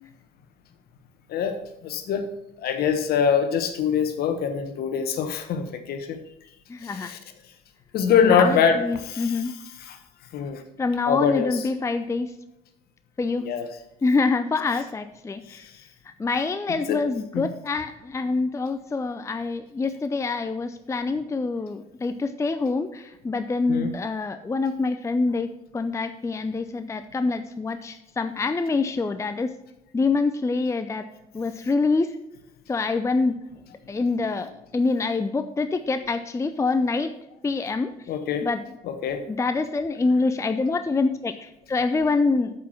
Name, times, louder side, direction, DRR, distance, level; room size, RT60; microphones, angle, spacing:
voice 1, 1.3-2.3 2.6-6.2 6.8-7.2 7.9-9.4 9.8-10.0 10.3-10.6 11.1-11.6 13.4-13.7 15.5-15.7 16.7-17.0 17.3-17.5 23.7-24.0 38.1-38.5 38.8-39.2, left 7 dB, 55° left, 8 dB, 1.2 m, -24 dB
voice 2, 6.7-7.1 8.2-9.5 10.8-12.3 13.2-13.5 14.0-15.7 16.2-29.5 29.9-31.1 31.3-32.1 32.7-33.4 33.9-37.1 37.4-37.9 38.4-38.7 39.3-42.5, left 3 dB, 15° left, 10 dB, 0.5 m, -25 dB
8.5 x 5.7 x 5.9 m, 0.84 s
hypercardioid pair, 55°, 19 cm